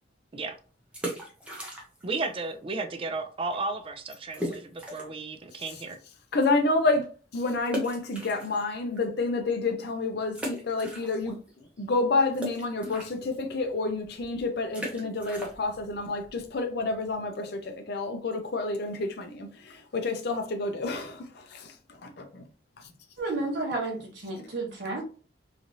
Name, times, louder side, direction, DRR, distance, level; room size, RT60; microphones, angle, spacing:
sound 1, 0.8-2.2 2.4-2.5 3.1-3.3 3.5-3.6 4.3-5.3 5.7-5.8 7.7-9.0 9.5-9.6 10.3-11.5 11.8-17.3, equal, 5° right, 0.7 m, -38 dB
voice 1, 2.0-6.0, right 3 dB, 30° right, 0.4 m, -34 dB
voice 2, 6.3-7.0 7.3-11.4 11.8-21.7 22.0-22.4, left 3 dB, 60° left, 0.5 m, -29 dB
voice 3, 23.2-25.0, right 2 dB, 70° right, 0.9 m, -31 dB
3.1 x 2.5 x 2.6 m
head